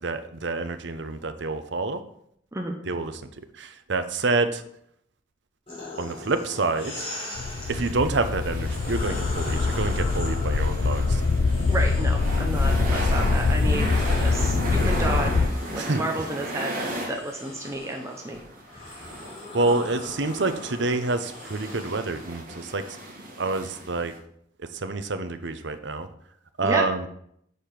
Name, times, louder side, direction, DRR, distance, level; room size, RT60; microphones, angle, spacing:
voice 1, 0.0-2.0 2.9-3.2 3.6-4.6 6.0-7.1 7.7-11.2 13.0-13.1 15.8-16.0 19.5-22.8 23.4-24.1 24.7-26.1 26.6-27.1, right 3 dB, 60° right, 10 dB, 0.7 m, -27 dB
sound 1, 5.7-7.9 8.5-12.6 13.1-22.2, left 2 dB, 30° left, 3.4 m, -40 dB
sound 2, 6.1-17.1 17.4-17.5 17.7-17.8 18.2-24.2, right 1 dB, 45° right, 1.8 m, -36 dB
sound 3, 7.4-15.5, left 3 dB, 65° left, 0.5 m, -24 dB
voice 2, 11.7-13.9 14.2-15.4 15.7-16.8 17.1-18.4 26.6-26.9, right 2 dB, 15° right, 1 dB, 0.7 m, -31 dB
6.7 x 5.1 x 5.8 m, 0.70 s
head